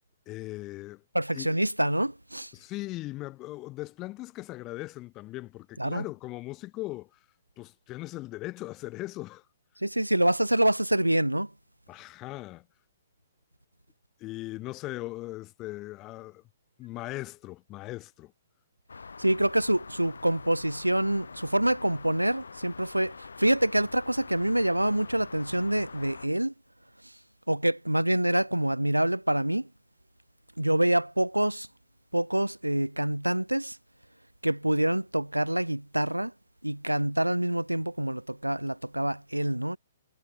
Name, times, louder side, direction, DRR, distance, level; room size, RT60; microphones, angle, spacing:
voice 1, 0.3-1.0 1.3-1.5 2.5-7.2 7.6-9.5 11.9-12.7 14.2-16.4 16.8-18.3, left 18 dB, 25° left, 3.6 m, -39 dB
voice 2, 1.1-2.5 5.8-6.0 9.8-11.5 19.2-26.5 27.5-29.7 30.6-31.7 32.1-33.8 34.4-36.3 36.6-39.8, right 1 dB, 85° right, 0.3 m, -26 dB
sound 1, 18.9-26.3, left 4 dB, 70° left, 2.8 m, -45 dB
figure-of-eight pair, 120°, 0 cm